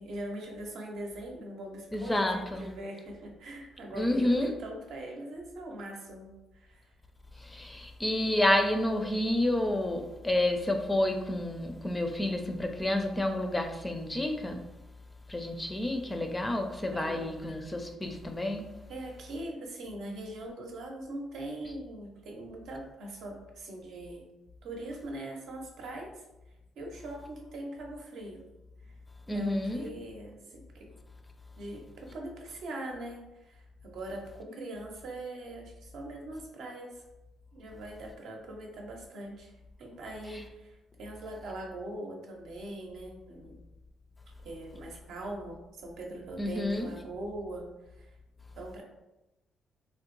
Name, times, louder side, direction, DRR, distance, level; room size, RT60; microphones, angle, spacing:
voice 1, 0.0-6.9 16.9-17.3 18.9-24.3 24.6-26.2 26.8-28.5 28.8-29.0 29.3-30.9 31.6-37.0 37.5-39.5 39.8-43.6 44.4-48.1 48.6-48.8, right 1 dB, 75° right, 1 dB, 0.7 m, -41 dB
voice 2, 1.9-2.7 4.0-4.5 7.4-14.6 15.3-18.7 29.3-29.9 40.3-40.4 46.4-46.9, left 1 dB, 15° left, 5 dB, 0.4 m, -29 dB
3.4 x 2.1 x 3.0 m, 0.99 s
cardioid pair, 95°, 0 cm